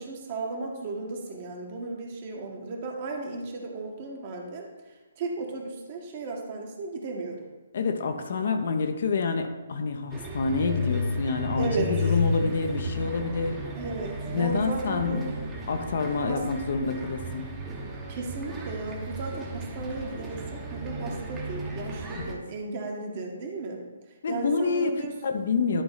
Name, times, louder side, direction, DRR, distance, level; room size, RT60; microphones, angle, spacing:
voice 1, 0.0-4.7 5.2-7.4 11.6-11.9 12.4-12.5 13.8-15.3 16.3-16.4 18.1-23.8 24.3-25.1, right 3 dB, 40° right, 1 dB, 1.5 m, -35 dB
voice 2, 7.7-13.6 14.3-15.3 15.7-17.5 22.1-22.4 24.2-25.8, left 4 dB, 55° left, 5 dB, 0.9 m, -27 dB
sound 1, 10.1-22.3, left 1 dB, 15° right, 1.1 m, -33 dB
11.0 x 4.0 x 4.0 m, 1.2 s
figure-of-eight pair, 140°, 0 cm